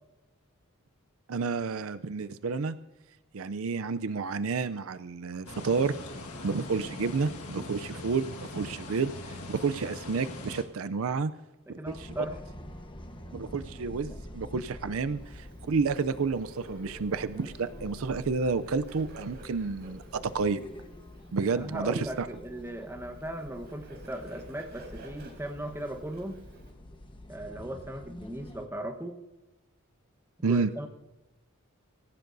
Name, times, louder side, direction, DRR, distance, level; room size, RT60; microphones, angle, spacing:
voice 1, 1.3-2.8 3.3-6.0 6.4-9.1 9.5-11.3 11.7-12.1 13.3-20.6 21.3-22.3 30.4-30.7, right 4 dB, 65° right, 12 dB, 0.5 m, -30 dB
sound 1, 5.5-10.6, left 2 dB, 85° left, 1.7 m, -41 dB
sound 2, 11.8-28.7, left 1 dB, 20° left, 1.1 m, -47 dB
voice 2, 11.8-12.4 21.5-26.4 27.3-29.2 30.4-30.9, right 1 dB, 10° right, 4 dB, 1.1 m, -38 dB
Bird, 15.1-26.7, right 1 dB, 50° right, 4.3 m, -51 dB
24.5 x 15.0 x 2.6 m, 1.1 s
head